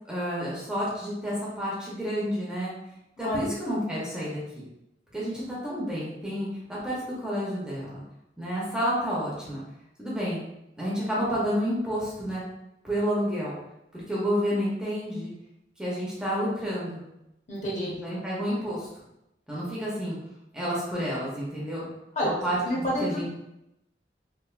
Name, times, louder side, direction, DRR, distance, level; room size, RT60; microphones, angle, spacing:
voice 1, 0.1-2.7 3.2-4.6 5.1-8.0 8.4-9.6 10.0-10.4 10.8-12.4 12.8-13.5 13.9-15.3 15.8-17.1 17.8-18.9 19.5-20.2 20.5-21.9 22.2-23.3, equal, 5° right, -7 dB, 0.7 m, -30 dB
voice 2, 3.2-3.5 17.5-18.0 22.2-22.3 22.6-23.0, equal, 40° left, -5 dB, 0.9 m, -28 dB
3.2 x 2.4 x 2.4 m, 0.86 s
head